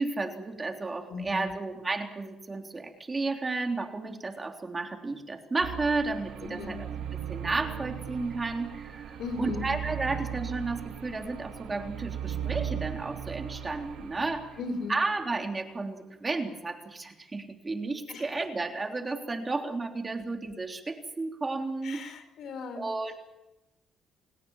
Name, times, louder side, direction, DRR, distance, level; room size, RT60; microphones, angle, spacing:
voice 1, 0.0-6.9 7.3-14.5 14.9-22.0 22.8-23.1, right 3 dB, 25° right, 3 dB, 3.5 m, -32 dB
voice 2, 1.1-1.5 6.4-6.8 9.2-9.7 14.6-15.0 18.1-18.4 21.8-22.8, left 3 dB, 70° left, 9 dB, 4.4 m, -37 dB
sound 1, 5.6-15.2, right 9 dB, 85° right, 2.6 m, -38 dB
30.0 x 17.5 x 7.3 m, 0.95 s
cardioid pair, 105°, 0 cm